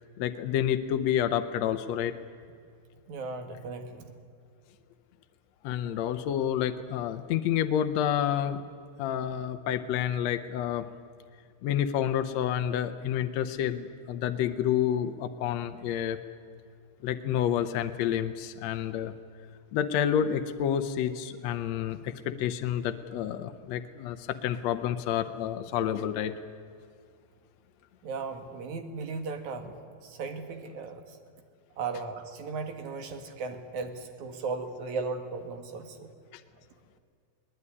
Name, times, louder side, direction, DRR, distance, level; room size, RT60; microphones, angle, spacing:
voice 1, 0.2-2.1 5.6-8.6 9.0-10.9 11.6-16.2 17.0-19.1 19.7-26.3 36.3-36.4, left 10 dB, 75° left, 8 dB, 2.0 m, -29 dB
voice 2, 3.1-4.1 28.0-29.8 30.0-31.2 31.8-36.1, right 4 dB, 80° right, 7 dB, 3.3 m, -36 dB
21.0 x 20.0 x 9.8 m, 2.3 s
omnidirectional pair, 3.3 m